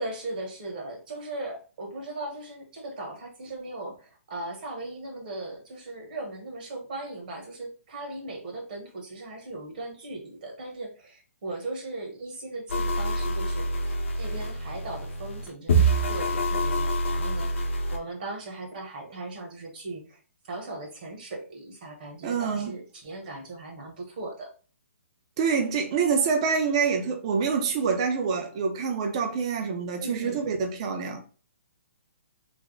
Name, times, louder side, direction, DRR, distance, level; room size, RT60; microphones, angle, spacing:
voice 1, 0.0-24.5 30.0-30.4, right 2 dB, 40° right, 0.9 m, -38 dB
sound 1, 12.7-18.0, right 1 dB, 55° left, 0.8 m, -26 dB
voice 2, 22.2-22.7 25.4-31.2, right 5 dB, 25° right, 0.5 m, -26 dB
3.4 x 2.0 x 3.7 m
hypercardioid pair, 175°, 8 cm